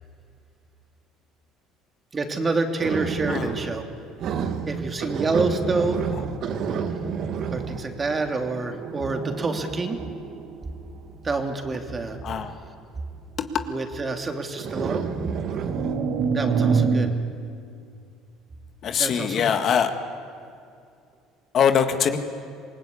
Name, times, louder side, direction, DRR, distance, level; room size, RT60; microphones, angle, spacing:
voice 1, 2.1-3.8 4.7-6.2 7.5-10.0 11.2-12.2 13.7-15.0 16.3-17.1 19.0-19.4, right 3 dB, 30° right, 4 dB, 3.0 m, -27 dB
sound 1, 2.8-3.9 4.2-11.1 12.0-12.3 14.6-17.1, right 5 dB, 55° right, 1.9 m, -28 dB
voice 2, 18.8-19.9 21.5-22.2, left 8 dB, 50° left, 7 dB, 1.8 m, -22 dB
27.0 x 19.0 x 8.6 m, 2.4 s
supercardioid pair, 80°, 0 cm